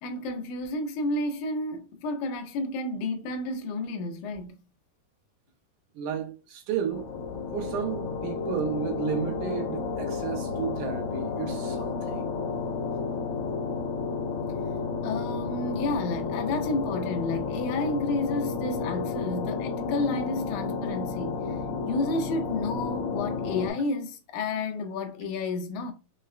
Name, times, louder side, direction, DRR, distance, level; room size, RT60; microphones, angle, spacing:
voice 1, 0.0-4.6 15.0-21.6 21.9-25.9, left 2 dB, 85° left, 1.7 m, -31 dB
voice 2, 6.0-7.1 7.5-12.3, right 7 dB, 80° right, 1.9 m, -32 dB
sound 1, 6.9-23.7, left 5 dB, 70° left, 1.8 m, -31 dB
5.6 x 2.0 x 2.4 m
omnidirectional pair, 4.2 m